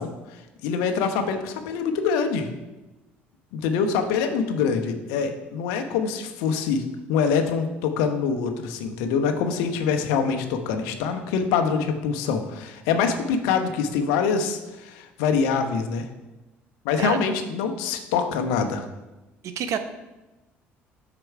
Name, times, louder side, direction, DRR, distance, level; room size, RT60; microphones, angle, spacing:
voice 1, 0.0-2.5 3.5-6.8 7.1-16.1 16.8-18.9, left 6 dB, 75° left, 6 dB, 0.9 m, -25 dB
voice 2, 19.4-19.8, right 8 dB, 60° right, 9 dB, 0.8 m, -27 dB
7.8 x 6.1 x 4.7 m, 1.1 s
hypercardioid pair, 60°, 6 cm